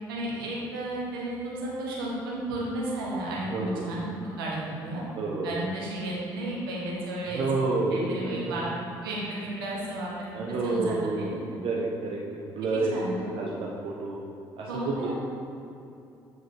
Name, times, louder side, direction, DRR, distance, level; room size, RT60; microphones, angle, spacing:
voice 1, 0.1-4.0 4.4-5.0 5.4-7.4 7.9-8.7 9.0-11.6 12.7-13.3 14.7-15.1, right 1 dB, 75° right, -5 dB, 1.1 m, -33 dB
voice 2, 3.5-3.9 5.2-5.6 7.3-8.6 10.3-11.4 11.6-12.2 12.5-14.2 14.6-15.1, right 3 dB, 50° right, -3 dB, 0.7 m, -29 dB
8.0 x 5.0 x 2.8 m, 2.7 s
figure-of-eight pair, 50°, 12 cm